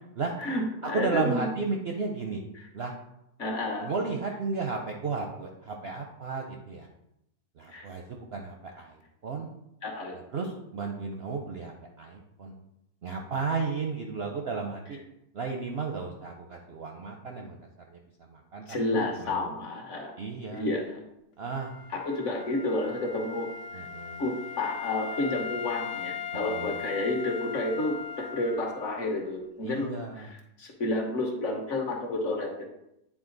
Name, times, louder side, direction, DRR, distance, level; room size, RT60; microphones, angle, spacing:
voice 1, 0.4-1.5 2.5-2.7 3.4-3.9 7.7-7.9 9.8-10.1 18.7-20.1 20.5-21.0 21.9-23.8 24.2-29.9 30.2-32.5, left 2 dB, 50° left, 1 dB, 1.3 m, -30 dB
voice 2, 0.9-2.4 2.7-2.9 3.8-6.9 7.6-9.0 9.2-9.5 10.3-12.5 13.0-15.0 15.3-17.6 17.9-18.0 18.3-19.6 20.2-20.6 21.4-21.7 23.7-24.2 26.5-26.8 29.6-30.3, right 4 dB, 60° right, 2 dB, 0.6 m, -33 dB
Wind instrument woodwind instrument, 21.5-29.3, left 7 dB, 75° left, 1.1 m, -39 dB
8.8 x 3.7 x 3.9 m, 0.84 s
omnidirectional pair, 1.7 m